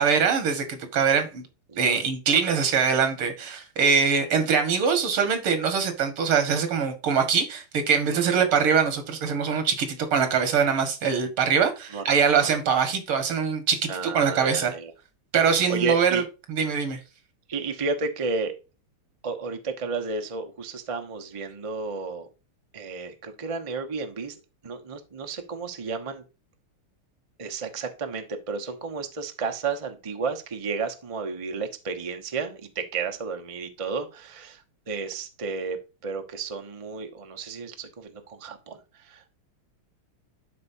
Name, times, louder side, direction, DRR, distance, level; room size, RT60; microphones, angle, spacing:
voice 1, 0.0-1.4 1.8-13.9 14.1-14.7 15.3-16.2 16.5-17.0, right 6 dB, 80° right, 2.4 m, -23 dB
voice 2, 13.9-14.9 15.5-16.2 17.5-18.5 19.2-22.3 22.7-24.4 24.6-26.2 27.4-39.3, right 4 dB, 25° right, 0.6 m, -32 dB
11.5 x 4.4 x 2.7 m
omnidirectional pair, 2.4 m